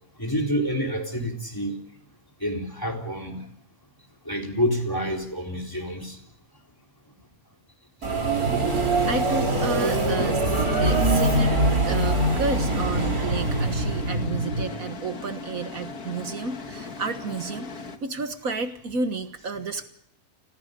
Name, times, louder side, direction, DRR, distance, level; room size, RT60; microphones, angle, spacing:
voice 1, 0.2-1.8 2.4-3.5 4.3-6.2, equal, 15° left, 2 dB, 3.9 m, -28 dB
Subway metro underground, 8.0-14.2, right 3 dB, 85° right, 4.6 m, -26 dB
sound 1, 8.4-14.7, right 1 dB, 50° right, 3.8 m, -26 dB
voice 2, 9.0-19.8, right 4 dB, 70° right, 8 dB, 1.8 m, -31 dB
sound 2, 10.5-18.0, left 4 dB, 80° left, 2.1 m, -38 dB
29.5 x 21.0 x 5.3 m, 0.67 s
omnidirectional pair, 1.5 m